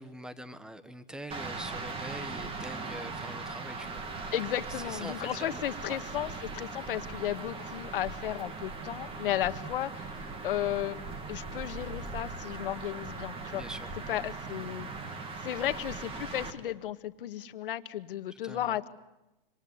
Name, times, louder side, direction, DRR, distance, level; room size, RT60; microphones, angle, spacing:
voice 1, 0.0-4.0 4.7-5.6 5.9-6.0 13.5-14.2 18.3-18.8, right 1 dB, ahead, 13 dB, 1.3 m, -44 dB
sound 1, 1.3-16.5, right 3 dB, 20° right, 2.7 m, -39 dB
voice 2, 4.3-10.1 10.4-11.0 11.3-13.6 14.1-14.9 15.4-18.9, left 12 dB, 65° left, 10 dB, 1.9 m, -34 dB
26.5 x 26.5 x 8.2 m, 0.97 s
hypercardioid pair, 145°, 29 cm